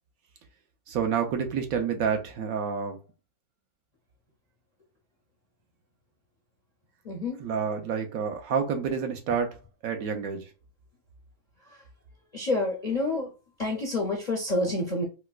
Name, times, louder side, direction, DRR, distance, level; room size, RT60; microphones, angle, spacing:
voice 1, 0.9-3.0 7.4-10.5, right 6 dB, 75° right, 1.0 m, -29 dB
voice 2, 7.0-7.4 11.7-11.8 12.3-13.3 13.6-15.0, left 2 dB, 55° left, 0.4 m, -28 dB
4.2 x 2.1 x 2.3 m
omnidirectional pair, 1.6 m